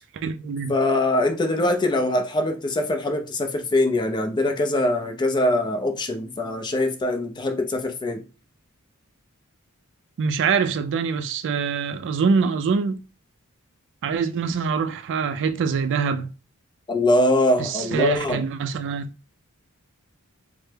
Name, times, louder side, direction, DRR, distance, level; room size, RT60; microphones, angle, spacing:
voice 1, 0.2-0.8 10.2-13.0 14.0-16.3 17.6-19.1, right 5 dB, 55° right, 0.3 m, -24 dB
voice 2, 0.7-8.2 16.9-18.4, left 1 dB, 20° left, 0.4 m, -23 dB
3.3 x 2.0 x 3.2 m
head